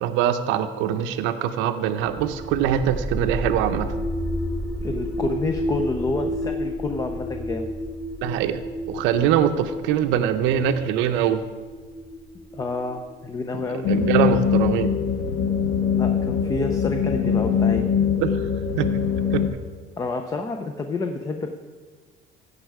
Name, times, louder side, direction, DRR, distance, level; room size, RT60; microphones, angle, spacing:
voice 1, 0.0-3.9 8.2-8.6 8.9-11.4 13.9-14.9 18.2-18.3 18.8-18.9 19.3-19.5, right 9 dB, 70° right, 8 dB, 0.6 m, -23 dB
sound 1, 2.0-13.8, equal, 5° right, 1.0 m, -31 dB
voice 2, 4.8-7.7 12.5-13.9 15.9-17.9 20.0-21.5, left 3 dB, 15° left, 6 dB, 0.5 m, -29 dB
sound 2, 13.8-19.5, left 7 dB, 80° left, 1.1 m, -22 dB
15.5 x 5.4 x 4.8 m, 1.5 s
cardioid pair, 165°, 21 cm